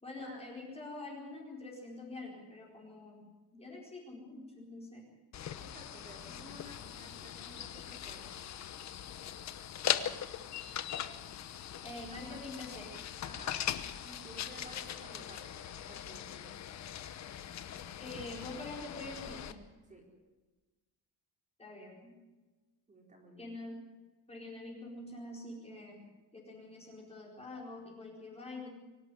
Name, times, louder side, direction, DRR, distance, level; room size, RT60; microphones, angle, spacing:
voice 1, 0.0-5.1 11.8-13.0 18.0-19.6 21.6-22.1 23.4-23.8 24.3-28.7, left 2 dB, 15° left, -2 dB, 4.3 m, -46 dB
sound 1, 5.3-19.5, left 10 dB, 40° left, 1.1 m, -40 dB
voice 2, 5.6-8.5 12.0-12.5 13.2-13.5 14.0-16.5 19.8-20.0 22.9-23.5, right 1 dB, 15° right, 0 dB, 4.5 m, -54 dB
24.5 x 12.0 x 9.9 m, 1.2 s
cardioid pair, 180°, 43 cm